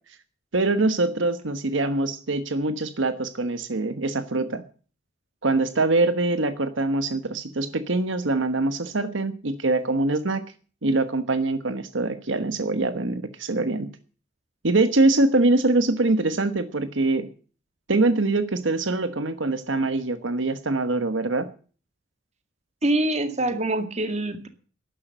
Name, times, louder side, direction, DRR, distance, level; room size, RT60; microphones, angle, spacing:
voice 1, 0.5-4.6 5.4-10.4 10.8-13.9 14.6-17.3 17.9-21.5, right 2 dB, 75° right, 11 dB, 1.2 m, -23 dB
voice 2, 22.8-24.5, right 1 dB, 35° right, 8 dB, 2.1 m, -25 dB
12.5 x 11.0 x 7.9 m, 0.40 s
head